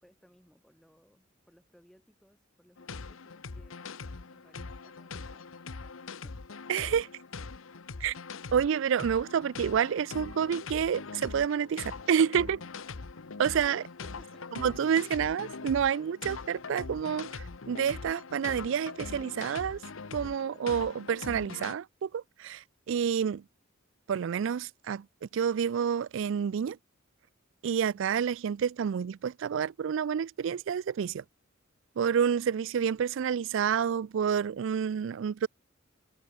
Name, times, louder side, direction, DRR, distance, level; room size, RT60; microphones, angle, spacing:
voice 1, 0.0-3.8 4.3-5.9 13.7-14.5, equal, ahead, 3.9 m, -62 dB
sound 1, 2.8-21.7, left 4 dB, 80° left, 1.0 m, -42 dB
voice 2, 6.7-7.1 8.0-8.1 8.5-12.6 13.4-13.8 14.6-19.8 20.1-23.4 24.1-25.1 25.3-26.8 27.6-31.2 32.0-35.5, right 7 dB, 65° right, 0.3 m, -29 dB
head